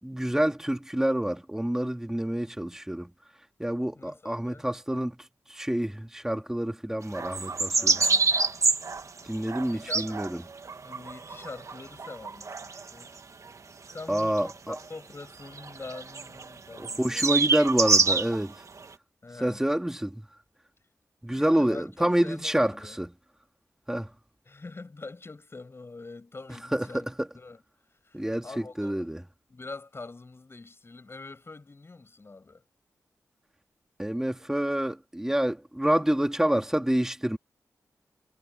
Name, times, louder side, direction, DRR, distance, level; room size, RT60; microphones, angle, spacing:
voice 1, 0.0-3.1 3.6-5.2 5.5-8.0 9.3-10.4 14.1-14.8 16.8-18.5 19.4-20.2 21.2-23.1 23.9-24.1 26.7-27.0 28.1-28.4 28.8-29.2 34.0-37.4, right 1 dB, 10° right, 2.2 m, -27 dB
voice 2, 3.9-4.7 7.7-8.3 9.7-10.2 10.8-13.1 13.9-17.3 19.2-19.6 21.2-23.0 24.4-27.6 27.9-29.1 29.5-32.6, left 3 dB, 40° left, 7.8 m, -44 dB
sound 1, 7.1-13.1 13.5-13.6 13.9-14.8 15.6-16.5 16.8-18.4 18.8-18.9, right 4 dB, 55° right, 1.5 m, -27 dB
cardioid pair, 65°, 6 cm